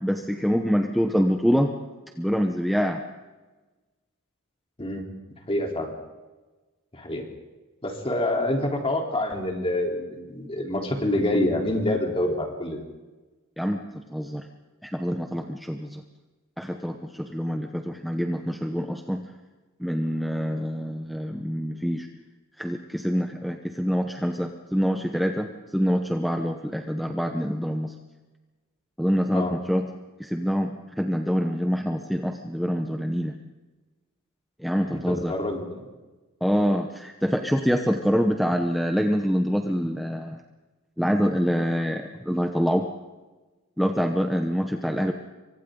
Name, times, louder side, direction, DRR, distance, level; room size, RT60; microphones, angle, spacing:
voice 1, 0.0-1.7 2.2-3.0 13.6-14.5 14.8-16.0 16.6-19.2 19.8-22.1 22.6-27.9 29.0-29.9 30.2-33.3 34.6-35.3 36.4-40.4 41.0-42.9 43.8-45.1, equal, ahead, 3 dB, 1.0 m, -25 dB
voice 2, 5.5-5.9 6.9-7.3 7.8-12.8 29.3-29.6 34.9-35.8, left 1 dB, 25° left, 1 dB, 3.8 m, -26 dB
28.0 x 24.5 x 3.9 m, 1.2 s
head